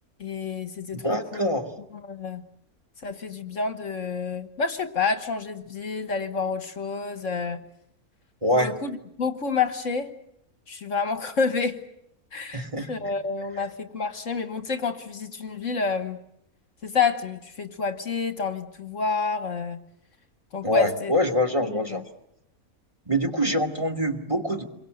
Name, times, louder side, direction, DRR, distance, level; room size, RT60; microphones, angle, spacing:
voice 1, 0.2-1.5 2.0-2.4 3.0-7.6 8.5-10.1 10.7-11.8 12.3-16.2 16.8-19.8 20.5-21.1 21.7-22.0, left 4 dB, 60° left, 9 dB, 1.7 m, -29 dB
voice 2, 0.9-1.7 8.4-8.7 12.5-13.1 20.6-22.0 23.1-24.6, left 1 dB, 20° right, 4 dB, 2.4 m, -25 dB
27.0 x 23.5 x 7.9 m, 0.80 s
omnidirectional pair, 1.6 m